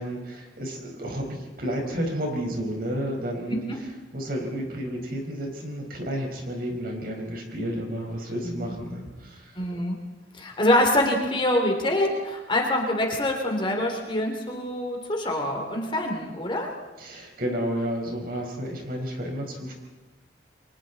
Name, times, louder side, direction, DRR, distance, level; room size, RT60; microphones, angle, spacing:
voice 1, 0.0-3.6 4.1-9.6 17.0-19.7, equal, 55° right, 1 dB, 5.0 m, -31 dB
voice 2, 8.4-8.7 9.5-10.0 10.3-16.7, left 1 dB, 30° left, 2 dB, 3.1 m, -25 dB
30.0 x 23.5 x 4.2 m, 1.1 s
head